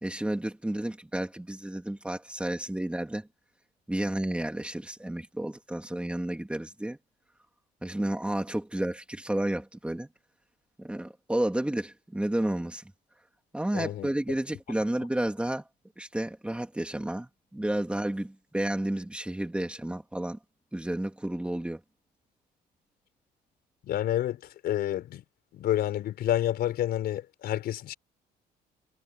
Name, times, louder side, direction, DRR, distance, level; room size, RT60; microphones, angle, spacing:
voice 1, 0.0-3.3 3.9-7.0 7.8-10.1 10.8-12.8 13.5-15.6 16.0-20.4 20.7-21.8, right 1 dB, 5° right, 3.0 m, -31 dB
voice 2, 13.7-14.1 23.8-25.2 25.5-27.9, left 12 dB, 70° left, 4.8 m, -29 dB
cardioid pair, 110°, 17 cm